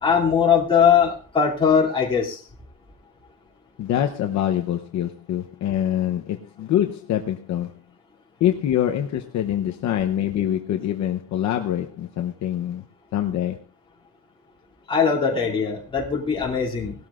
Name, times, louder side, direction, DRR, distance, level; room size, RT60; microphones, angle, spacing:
voice 1, 0.0-2.4 14.9-16.9, left 7 dB, 15° left, -4 dB, 2.7 m, -20 dB
voice 2, 3.8-7.8 8.4-12.8 13.1-13.6, left 11 dB, 55° left, 4 dB, 0.8 m, -25 dB
19.0 x 12.5 x 2.5 m, 0.36 s
cardioid pair, 175°, 34 cm